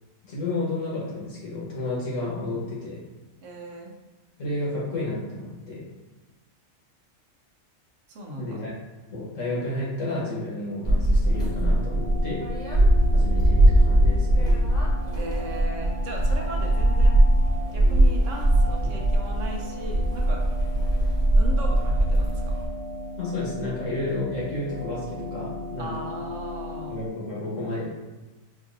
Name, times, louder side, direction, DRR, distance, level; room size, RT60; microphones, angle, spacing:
voice 1, 0.3-3.0 4.4-5.8 8.4-8.7 9.1-12.4 13.1-14.5 18.8-18.9 23.2-25.9 26.9-27.8, left 2 dB, 70° left, -6 dB, 1.5 m, -31 dB
voice 2, 3.4-3.9 8.1-8.6 15.1-17.2 17.7-20.4 21.4-22.6 25.8-27.0, right 1 dB, 70° right, 0 dB, 1.0 m, -37 dB
sound 1, 10.8-22.7, right 1 dB, 5° left, 0.7 m, -21 dB
sound 2, 11.3-27.1, left 1 dB, 50° left, 0.7 m, -37 dB
4.5 x 2.5 x 2.5 m, 1.2 s
omnidirectional pair, 1.4 m